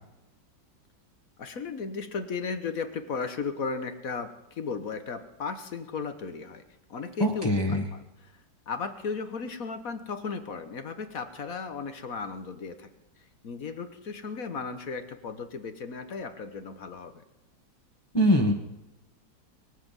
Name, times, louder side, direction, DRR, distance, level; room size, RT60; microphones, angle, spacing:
voice 1, 1.4-6.6 6.9-8.4 8.7-12.9 13.4-17.2, left 5 dB, 55° left, 9 dB, 1.5 m, -35 dB
voice 2, 7.2-7.8 18.1-18.5, equal, 15° left, 1 dB, 1.5 m, -22 dB
22.0 x 7.6 x 7.5 m, 0.94 s
omnidirectional pair, 1.9 m